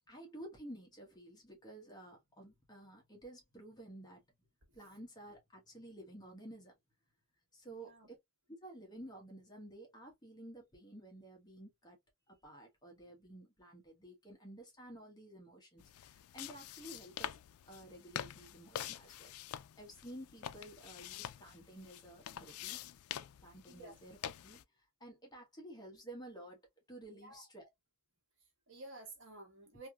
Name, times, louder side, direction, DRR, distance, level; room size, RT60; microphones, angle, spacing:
voice 1, 0.1-4.2 4.7-6.7 7.5-8.2 8.5-12.0 12.3-17.4 17.7-22.8 23.4-24.1 24.4-26.6 26.9-27.7, right 1 dB, 20° left, 1.1 m, -52 dB
voice 2, 7.7-8.1 23.7-24.0 27.1-27.5 28.4-29.9, right 2 dB, 55° right, 1.5 m, -53 dB
sound 1, 15.8-24.6, left 11 dB, 80° left, 0.3 m, -46 dB
3.3 x 2.8 x 2.2 m
head